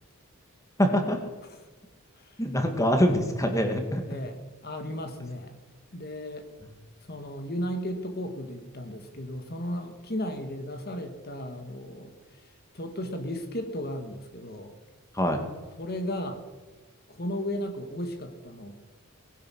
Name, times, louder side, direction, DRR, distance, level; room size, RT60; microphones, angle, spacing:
voice 1, 0.8-1.2 2.4-4.0 6.6-6.7 15.1-15.4, equal, 15° left, 5 dB, 2.0 m, -24 dB
voice 2, 4.1-5.6 5.9-6.5 7.1-12.1 12.7-14.7 15.8-16.4 17.1-18.7, equal, 45° left, 6 dB, 1.6 m, -35 dB
20.0 x 10.5 x 6.3 m, 1.3 s
head